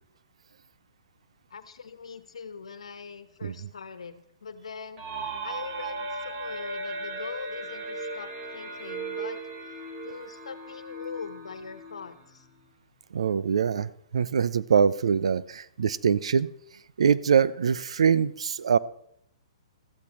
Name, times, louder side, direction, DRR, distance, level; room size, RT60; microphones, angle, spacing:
voice 1, 1.5-9.4 10.0-12.5, left 5 dB, 80° left, 11 dB, 1.3 m, -42 dB
sound 1, 5.0-12.6, right 2 dB, 40° right, 3.6 m, -37 dB
voice 2, 13.1-16.5 17.0-18.8, right 7 dB, 75° right, 18 dB, 0.6 m, -23 dB
15.0 x 14.0 x 3.1 m, 0.71 s
hypercardioid pair, 130°, 3 cm